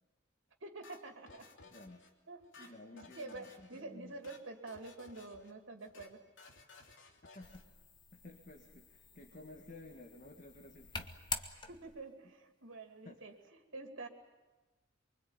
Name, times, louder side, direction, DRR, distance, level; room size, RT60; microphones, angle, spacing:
voice 1, 0.6-1.5 2.3-6.2 11.7-13.3 13.7-14.1, right 2 dB, 90° right, 4 dB, 2.7 m, -48 dB
sound 1, 0.8-2.1 2.4-3.8 4.1-4.4 4.7-5.5 5.8-6.1 6.4-7.6, left 3 dB, 75° left, 2.9 m, -58 dB
voice 2, 1.6-2.1 2.6-4.2 7.3-7.7 8.1-11.1 13.0-13.2, left 2 dB, 40° left, 3 dB, 2.0 m, -54 dB
sound 2, 7.4-12.1, left 4 dB, 25° left, 1.3 m, -46 dB
24.5 x 24.0 x 9.0 m, 1.2 s
head